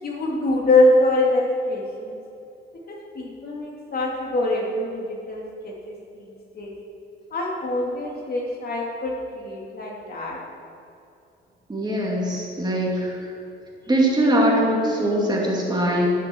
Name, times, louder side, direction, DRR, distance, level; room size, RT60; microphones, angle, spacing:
voice 1, 0.0-2.2 2.9-6.2 6.5-6.7 7.3-10.4, left 2 dB, 50° left, -2 dB, 2.7 m, -24 dB
voice 2, 11.7-13.2 13.9-16.1, right 1 dB, 20° right, -3 dB, 2.8 m, -21 dB
11.5 x 11.0 x 4.6 m, 2.6 s
cardioid pair, 90°, 20 cm